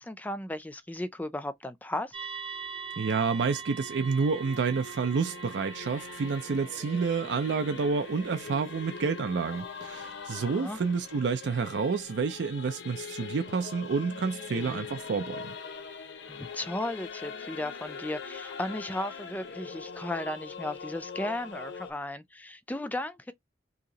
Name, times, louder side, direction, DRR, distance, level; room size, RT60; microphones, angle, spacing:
voice 1, 0.0-2.2 10.4-10.8 14.5-14.9 16.3-23.3, left 1 dB, 10° left, 0.3 m, -35 dB
sound 1, 2.1-10.8, right 6 dB, 30° right, 0.7 m, -44 dB
Singing / Musical instrument, 2.5-21.9, left 5 dB, 85° left, 0.6 m, -43 dB
voice 2, 3.0-15.5, right 5 dB, 85° right, 0.4 m, -29 dB
2.8 x 2.8 x 3.8 m
head